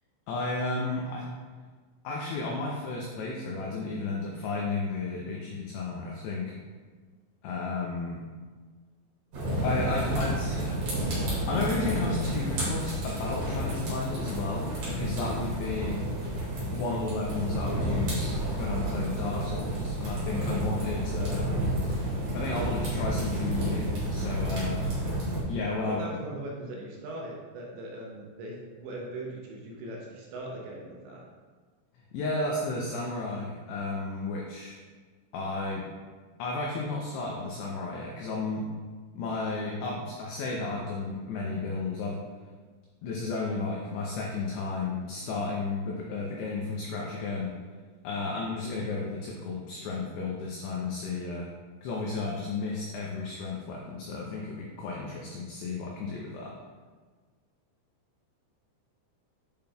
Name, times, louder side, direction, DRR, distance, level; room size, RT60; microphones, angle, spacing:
voice 1, 0.3-1.3 2.0-6.5 7.4-8.2 9.6-10.8 11.5-16.0 16.7-21.5 22.3-24.8 25.5-26.0 32.1-34.8 35.3-35.9 36.4-38.7 39.1-42.2 43.0-47.5 48.0-51.5 51.8-56.5, left 3 dB, 85° left, -2 dB, 2.3 m, -33 dB
sound 1, 9.3-25.4, right 1 dB, 55° right, 3.1 m, -30 dB
voice 2, 25.9-31.2 48.6-48.9, right 1 dB, 80° right, -2 dB, 2.7 m, -40 dB
8.7 x 5.1 x 2.3 m, 1.5 s
omnidirectional pair, 5.6 m